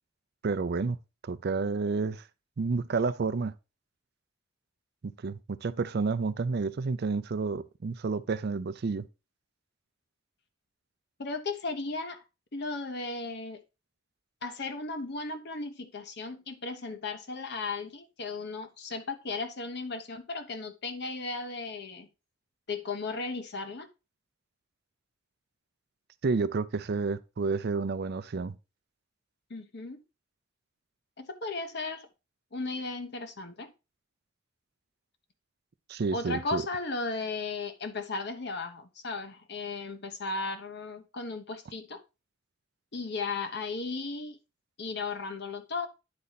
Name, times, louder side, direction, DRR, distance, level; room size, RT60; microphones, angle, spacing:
voice 1, 0.4-1.0 1.2-2.2 2.6-3.5 5.0-9.1 26.2-28.5 35.9-36.6, right 4 dB, 55° right, 0.4 m, -30 dB
voice 2, 11.2-12.2 12.5-13.6 14.4-22.1 22.7-23.9 29.5-30.0 31.2-32.1 32.5-33.7 36.1-42.0 42.9-44.4 44.8-45.9, left 3 dB, 55° left, 1.0 m, -35 dB
9.6 x 4.2 x 4.0 m
head